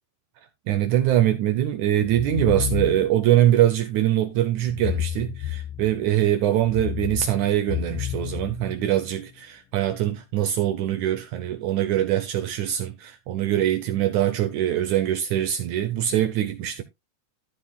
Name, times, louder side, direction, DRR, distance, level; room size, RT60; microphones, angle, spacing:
voice 1, 0.7-16.8, right 12 dB, 90° right, 1.6 m, -23 dB
sound 1, 2.0-3.3 4.7-6.1 6.6-9.1, left 9 dB, 75° left, 2.2 m, -31 dB
13.5 x 7.7 x 2.2 m
omnidirectional pair, 4.3 m